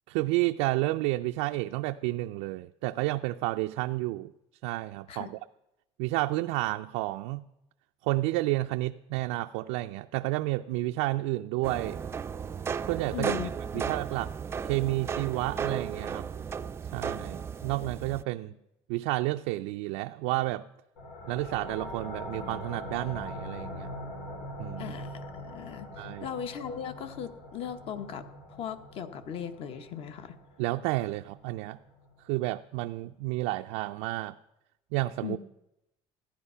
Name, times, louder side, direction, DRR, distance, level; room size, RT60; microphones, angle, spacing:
voice 1, 0.1-4.3 4.6-5.4 6.0-7.4 8.0-12.0 12.8-13.3 13.7-14.3 14.6-16.3 16.9-18.5 18.9-20.7 21.3-23.9 24.6-24.9 26.0-26.3 30.6-31.8 32.3-34.4 34.9-35.4, right 18 dB, 85° right, 6 dB, 0.4 m, -30 dB
sound 1, 11.6-18.2, right 6 dB, 20° right, 0.4 m, -35 dB
voice 2, 13.1-13.5 13.9-14.0 24.8-30.4 35.2-35.4, left 8 dB, 50° left, 10 dB, 1.1 m, -38 dB
sound 2, 21.0-32.3, left 1 dB, 85° left, 4.6 m, -43 dB
14.5 x 10.5 x 5.6 m, 0.89 s
cardioid pair, 130°, 12 cm